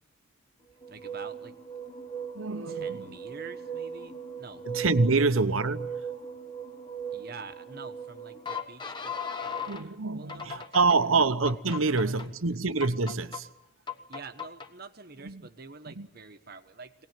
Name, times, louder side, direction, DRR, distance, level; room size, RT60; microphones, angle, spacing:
sound 1, 0.8-9.8 10.3-11.0 11.5-12.3 12.8-13.4 13.9-14.7, right 1 dB, 20° left, 1.1 m, -38 dB
voice 1, 0.9-1.6 2.6-4.7 5.1-5.3 7.1-10.7 11.8-12.6 14.1-17.1, right 4 dB, 45° right, 1.2 m, -47 dB
voice 2, 2.3-3.2 4.6-6.1 9.7-13.5 15.2-15.4 15.9-16.1, right 3 dB, 75° right, 1.0 m, -26 dB
23.0 x 18.5 x 9.2 m
head